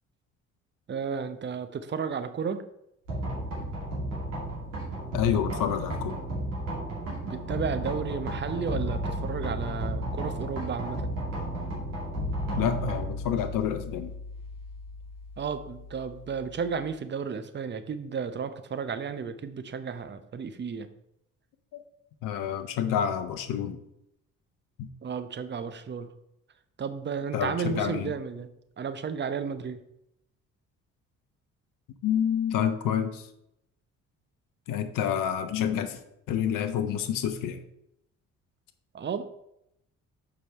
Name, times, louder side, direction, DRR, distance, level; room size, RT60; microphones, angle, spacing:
voice 1, 0.9-2.6 7.2-11.1 15.4-20.9 25.0-26.1 26.8-28.5 28.8-29.8 38.9-39.2, right 6 dB, 30° right, 10 dB, 0.8 m, -33 dB
sound 1, 3.1-16.9, right 1 dB, 80° right, 2.3 m, -34 dB
voice 2, 5.1-6.2 12.6-14.1 21.7-21.8 22.2-23.8 24.8-24.9 27.3-28.1 32.0-33.3 34.7-36.0 36.3-37.6, left 9 dB, 55° left, 8 dB, 0.9 m, -28 dB
6.7 x 4.8 x 4.4 m, 0.79 s
hypercardioid pair, 50°, 38 cm